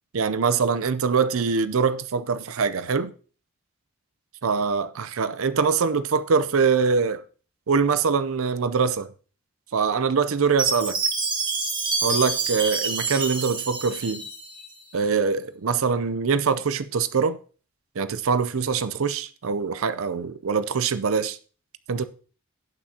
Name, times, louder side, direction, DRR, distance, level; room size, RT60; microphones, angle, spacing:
voice 1, 0.1-3.1 4.4-7.2 7.7-9.1 9.7-11.0 12.0-14.3 14.9-17.4 18.0-21.4 21.9-22.0, right 5 dB, 75° right, 0.5 m, -23 dB
Chime, 10.6-14.7, right 4 dB, 20° right, 1.3 m, -27 dB
17.5 x 6.0 x 2.8 m
head